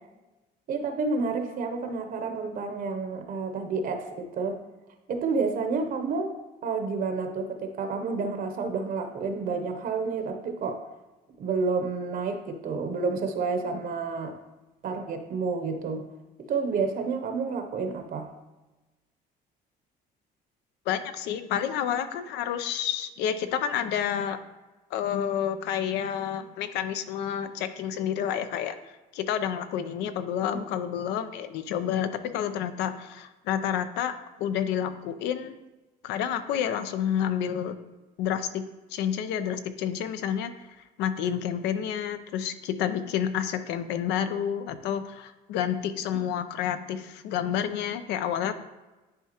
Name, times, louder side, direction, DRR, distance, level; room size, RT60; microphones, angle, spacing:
voice 1, 0.7-4.6 5.1-6.3 6.6-10.8 11.4-14.4 14.8-16.1 16.5-18.3 30.5-30.6 46.1-46.2, right 4 dB, 55° right, 6 dB, 0.8 m, -30 dB
voice 2, 20.9-24.4 24.9-28.8 29.1-34.1 34.4-35.6 36.0-37.7 38.2-38.6 38.9-40.5 41.0-48.5, left 9 dB, 90° left, 11 dB, 0.5 m, -29 dB
10.5 x 3.6 x 2.9 m, 1.1 s
cardioid pair, 110°, 17 cm